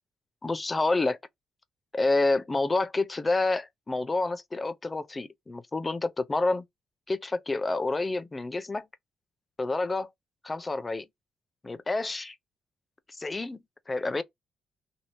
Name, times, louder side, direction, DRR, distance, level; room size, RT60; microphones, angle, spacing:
voice 1, 0.4-1.2 1.9-6.6 7.1-8.9 9.6-10.1 10.4-11.0 11.6-12.4 13.1-13.6 13.9-14.2, left 2 dB, 25° left, 0.5 m, -28 dB
2.9 x 2.7 x 2.6 m
cardioid pair, 90°, 0 cm